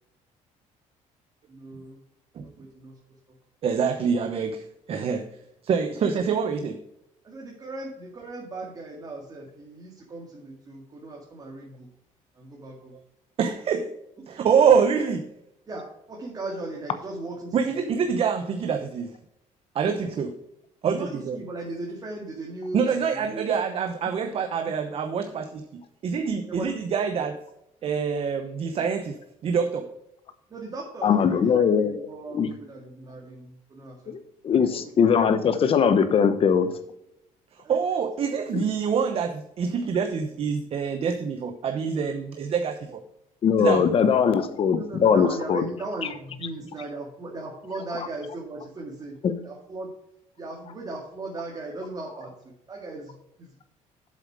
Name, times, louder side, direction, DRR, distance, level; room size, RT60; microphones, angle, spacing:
voice 1, 1.5-2.0 2.6-3.0 7.2-11.9 12.3-13.0 15.7-18.0 20.8-23.5 26.5-26.7 30.5-34.1 34.5-34.8 37.6-37.8 44.6-49.2 49.4-49.9 50.4-53.5, right 2 dB, 30° right, -2 dB, 2.1 m, -37 dB
voice 2, 3.6-5.3 5.6-6.8 13.4-14.0 14.3-15.3 17.5-19.1 19.7-20.4 20.8-21.4 22.7-27.4 27.8-29.9 37.7-43.0 43.6-43.9, right 6 dB, 45° right, 8 dB, 0.8 m, -26 dB
voice 3, 31.0-32.0 32.3-32.5 34.1-34.2 34.4-36.7 38.5-38.6 43.4-45.6 49.2-49.4, left 7 dB, 40° left, 11 dB, 1.0 m, -21 dB
7.7 x 7.4 x 4.8 m, 0.81 s
cardioid pair, 135°, 14 cm